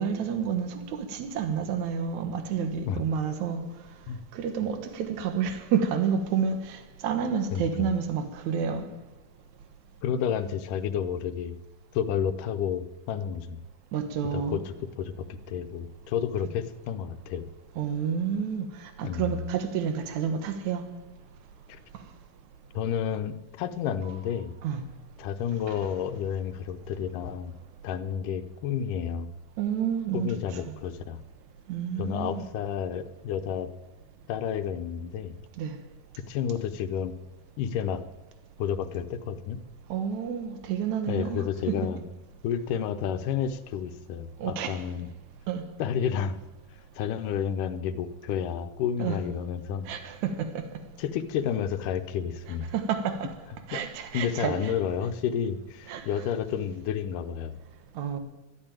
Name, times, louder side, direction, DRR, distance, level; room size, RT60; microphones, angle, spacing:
voice 1, 0.0-3.6 4.3-8.9 13.9-14.6 17.8-18.7 19.0-20.9 24.6-24.8 25.7-25.8 29.6-30.4 30.7-30.8 31.7-32.5 35.6-35.8 39.9-41.9 44.4-44.8 45.5-45.6 49.0-49.2 49.9-50.6 52.7-53.3 53.7-54.7 55.9-56.0 58.0-58.2, right 7 dB, 65° right, 2.5 m, -29 dB
voice 2, 7.5-7.9 10.0-11.6 11.9-13.6 14.3-17.5 19.0-19.5 21.7-21.8 22.7-24.5 25.2-27.6 27.8-29.3 30.1-31.2 32.0-33.7 34.3-35.3 36.3-37.1 37.6-38.0 38.6-39.6 41.1-42.0 42.4-45.1 45.8-46.4 47.0-49.9 51.0-52.7 53.7-53.8 54.1-57.6, left 8 dB, 80° left, 2.3 m, -30 dB
12.5 x 11.0 x 8.9 m
omnidirectional pair, 3.8 m